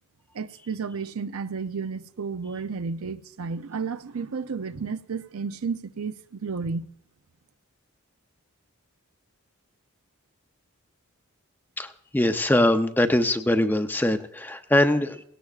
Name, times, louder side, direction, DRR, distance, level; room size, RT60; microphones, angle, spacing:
voice 1, 0.3-6.9, right 5 dB, 80° right, 0.6 m, -32 dB
voice 2, 11.8-15.2, left 1 dB, 10° left, 0.6 m, -22 dB
18.5 x 17.0 x 2.4 m
head